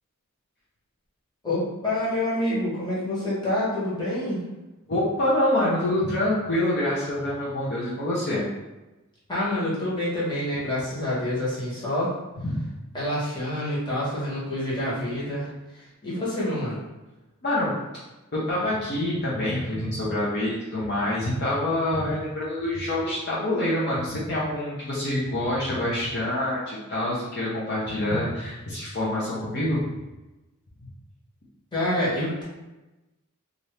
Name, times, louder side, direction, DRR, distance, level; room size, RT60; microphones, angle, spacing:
voice 1, 1.4-4.4 9.3-12.1 12.9-16.8 31.7-32.4, left 1 dB, 20° left, -8 dB, 1.2 m, -27 dB
voice 2, 4.9-8.4 12.4-12.6 17.4-18.0 18.5-29.8, left 1 dB, 50° left, -7 dB, 0.7 m, -26 dB
2.8 x 2.6 x 3.2 m, 1.0 s
head